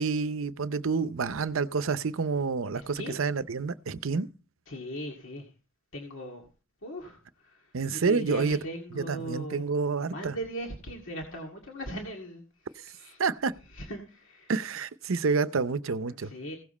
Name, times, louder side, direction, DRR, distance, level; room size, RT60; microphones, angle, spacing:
voice 1, 0.0-4.3 7.7-8.6 8.9-10.3 13.2-13.5 14.5-16.3, right 4 dB, 75° right, 0.6 m, -28 dB
voice 2, 2.7-3.2 4.7-5.5 5.9-6.5 6.8-7.7 7.9-9.7 10.0-12.4 12.8-13.2 13.7-14.5 16.2-16.6, equal, 70° left, 2.1 m, -39 dB
16.5 x 7.3 x 4.2 m
head